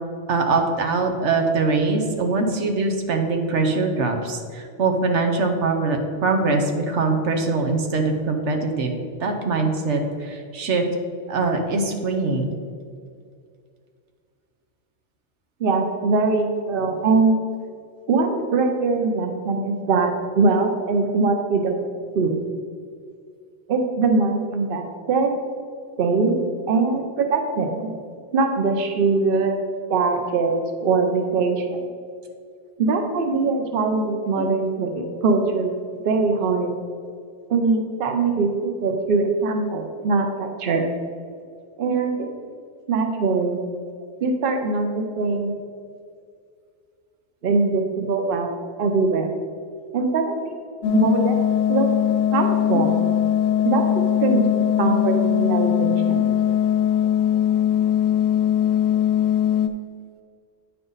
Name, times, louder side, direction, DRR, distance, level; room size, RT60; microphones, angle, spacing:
voice 1, 0.3-8.9 9.2-10.8 11.3-12.5 52.7-52.8, right 3 dB, 85° right, 4 dB, 1.2 m, -22 dB
voice 2, 15.6-17.4 18.1-21.8 22.1-22.4 23.7-25.4 26.0-27.8 28.3-29.5 29.9-31.8 32.8-35.7 36.0-36.7 37.5-40.9 41.8-42.3 42.9-43.6 44.2-45.6 47.4-48.5 48.8-49.3 49.9-50.6 50.9-51.4 51.7-51.9 52.3-53.1 53.6-56.2, right 4 dB, 55° right, 4 dB, 0.9 m, -22 dB
sound 1, 50.8-59.7, left 10 dB, 70° left, 0.8 m, -20 dB
8.8 x 5.8 x 4.0 m, 2.2 s
omnidirectional pair, 1.2 m